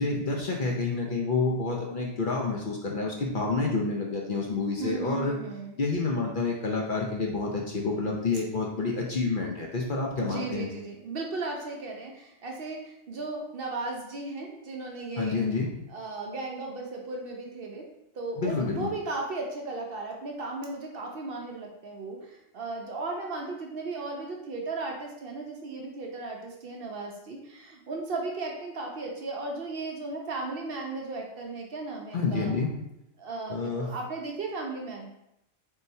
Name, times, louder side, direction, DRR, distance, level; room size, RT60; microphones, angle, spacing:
voice 1, 0.0-5.4 5.8-10.7 15.2-15.7 18.4-18.9 32.1-32.7 33.5-33.9, left 3 dB, 55° left, -1 dB, 0.6 m, -28 dB
voice 2, 4.8-5.7 10.2-15.4 15.9-17.9 18.1-32.5 33.2-35.1, right 3 dB, 60° right, 0 dB, 0.7 m, -36 dB
4.2 x 3.6 x 2.7 m, 0.84 s
omnidirectional pair, 1.3 m